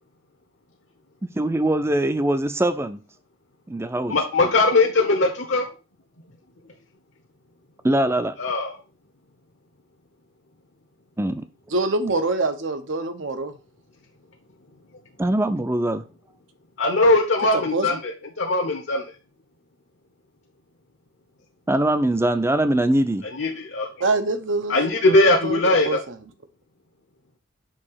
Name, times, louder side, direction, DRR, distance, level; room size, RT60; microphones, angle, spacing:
voice 1, 1.4-3.0 3.7-4.2 7.8-8.3 11.2-11.4 15.2-16.0 21.7-23.2, right 1 dB, 15° right, 10 dB, 0.5 m, -22 dB
voice 2, 4.1-5.7 8.4-8.8 16.8-19.0 23.3-24.1 24.7-26.0, left 2 dB, 70° left, 1 dB, 1.0 m, -20 dB
voice 3, 11.7-13.5 17.7-18.0 24.0-24.8 25.0-25.6 25.8-26.1, right 3 dB, 75° right, 8 dB, 0.9 m, -25 dB
6.3 x 2.9 x 5.7 m, 0.32 s
head